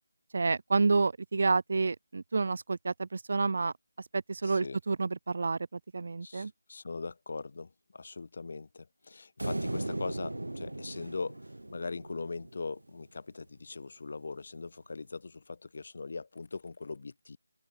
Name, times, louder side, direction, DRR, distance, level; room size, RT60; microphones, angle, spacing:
voice 1, 0.3-3.7 4.1-5.6 5.9-6.5, right 4 dB, 45° right, 2.2 m, -29 dB
voice 2, 4.4-4.8 6.2-11.4 11.7-17.4, left 4 dB, 45° left, 7.7 m, -41 dB
sound 1, 9.4-12.8, right 1 dB, 70° right, 2.9 m, -37 dB
open air
figure-of-eight pair, 160°, 0 cm